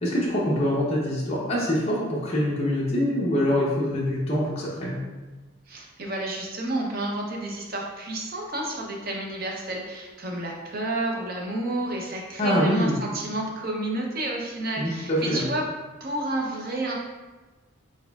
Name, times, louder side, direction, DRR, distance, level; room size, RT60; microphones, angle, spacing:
voice 1, 0.0-5.0 12.4-13.0 14.8-15.5, equal, 30° left, -6 dB, 0.7 m, -24 dB
voice 2, 5.7-15.7 16.0-16.9, right 1 dB, 45° right, 0 dB, 0.6 m, -30 dB
4.2 x 3.8 x 2.3 m, 1.2 s
head